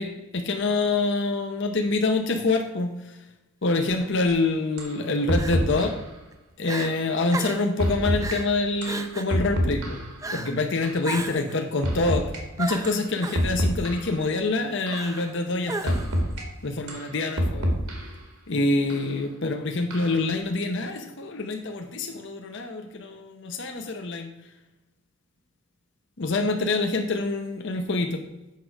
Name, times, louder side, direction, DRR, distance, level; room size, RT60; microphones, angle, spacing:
voice 1, 0.0-3.2 3.6-5.9 6.6-10.0 10.3-12.3 12.6-16.0 16.6-17.7 18.5-24.3 26.2-28.2, left 3 dB, 55° left, 4 dB, 0.7 m, -26 dB
Crying sobbing, 3.8-4.1 5.4-5.9 6.3-6.4 6.6-6.9 7.3-7.7 8.2-8.5 8.8-9.4 10.2-10.6 11.0-11.6 12.6-13.5 14.9-15.3 15.7-16.2, right 3 dB, 15° right, 0.4 m, -34 dB
sound 1, 4.3-4.4 4.8-5.0 5.3-6.0 6.8-7.0 7.8-8.4 8.8-10.2 10.8-11.0 11.8-12.4 12.8-13.0 13.3-14.2 14.9-15.1 15.9-16.4 16.9-18.2 18.9-19.1 19.9-20.3, equal, 75° right, 1.9 m, -27 dB
8.4 x 6.2 x 4.7 m, 0.99 s
head